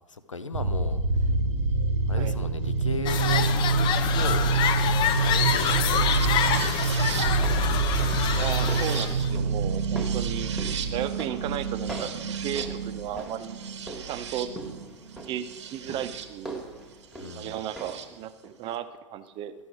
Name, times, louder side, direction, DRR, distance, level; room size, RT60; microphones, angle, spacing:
voice 1, 0.1-1.0 2.1-3.5 3.7-3.9 4.1-4.5 5.2-7.6 17.2-17.6, left 4 dB, 85° left, 11 dB, 0.6 m, -37 dB
sound 1, 0.5-16.3 17.4-18.0, right 5 dB, 65° right, 0.8 m, -27 dB
sound 2, 3.1-9.3, left 9 dB, 30° left, 0.5 m, -27 dB
sound 3, 7.1-18.2 18.4-18.5, right 2 dB, ahead, 1.4 m, -42 dB
voice 2, 8.3-10.5 10.9-13.6 14.1-14.5 15.3-16.6 17.3-19.5, right 10 dB, 35° right, 11 dB, 0.6 m, -34 dB
12.5 x 6.2 x 4.6 m, 1.3 s
figure-of-eight pair, 90°, 16 cm